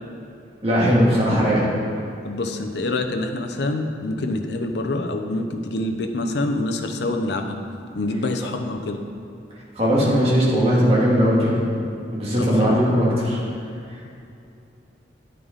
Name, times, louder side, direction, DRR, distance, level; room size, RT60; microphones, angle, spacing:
voice 1, 0.6-1.7 9.8-11.6 12.1-13.4, equal, 35° right, -6 dB, 2.1 m, -18 dB
voice 2, 2.2-7.5 8.0-9.0 12.4-12.8, left 2 dB, 70° left, 4 dB, 0.7 m, -26 dB
10.5 x 6.6 x 4.0 m, 2.6 s
head